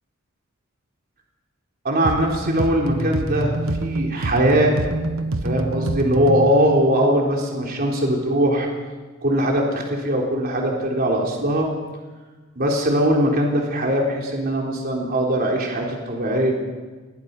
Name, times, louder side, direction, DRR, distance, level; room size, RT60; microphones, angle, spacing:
voice 1, 1.8-4.8 5.4-8.7 9.2-11.7 12.6-16.5, right 1 dB, 50° right, -1 dB, 3.8 m, -21 dB
sound 1, 2.0-6.6, right 1 dB, 80° right, 1.4 m, -26 dB
27.0 x 20.5 x 5.5 m, 1.4 s
head